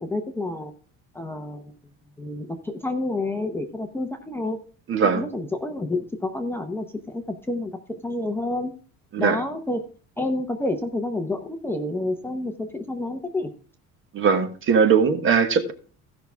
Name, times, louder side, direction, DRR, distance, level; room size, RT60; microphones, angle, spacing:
voice 1, 0.0-0.7 1.1-1.7 2.2-4.6 5.2-7.7 8.0-8.7 9.2-9.8 10.2-13.5, left 2 dB, 5° left, 0.8 m, -29 dB
voice 2, 4.9-5.2 9.1-9.4 14.1-15.7, right 6 dB, 40° right, 1.4 m, -20 dB
16.0 x 5.8 x 3.4 m
cardioid pair, 165°, 31 cm